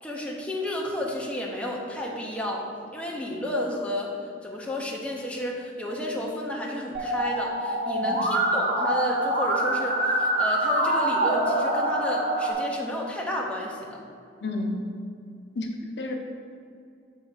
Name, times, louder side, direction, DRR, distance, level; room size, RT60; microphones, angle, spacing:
voice 1, 0.0-2.7 2.9-4.1 4.4-14.0, left 1 dB, 5° left, -3 dB, 0.8 m, -32 dB
Musical instrument, 6.9-12.5, right 1 dB, 70° right, 1.4 m, -25 dB
voice 2, 14.4-14.8 15.5-16.1, left 2 dB, 75° left, 2 dB, 0.7 m, -31 dB
6.3 x 3.6 x 5.6 m, 2.3 s
head